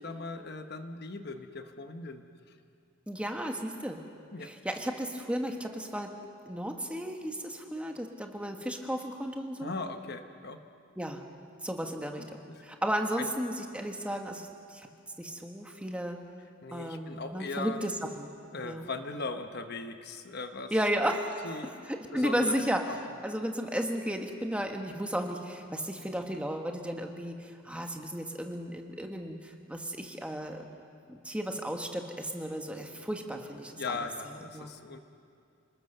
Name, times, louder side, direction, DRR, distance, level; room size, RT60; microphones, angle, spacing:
voice 1, 0.0-2.2 4.3-4.5 9.6-10.6 12.2-12.3 13.2-13.3 16.6-17.8 18.5-20.7 21.4-21.8 22.1-23.0 33.3-33.4 33.7-35.0, left 3 dB, 50° left, 7 dB, 1.1 m, -39 dB
voice 2, 3.1-4.0 4.4-6.1 6.5-9.7 11.0-11.2 11.6-12.2 12.6-14.9 15.2-16.2 16.7-18.3 18.6-18.9 20.7-21.5 21.9-22.8 23.2-30.7 31.1-34.0 34.5-34.7, equal, 5° right, 3 dB, 1.5 m, -34 dB
27.0 x 19.5 x 6.7 m, 2.4 s
head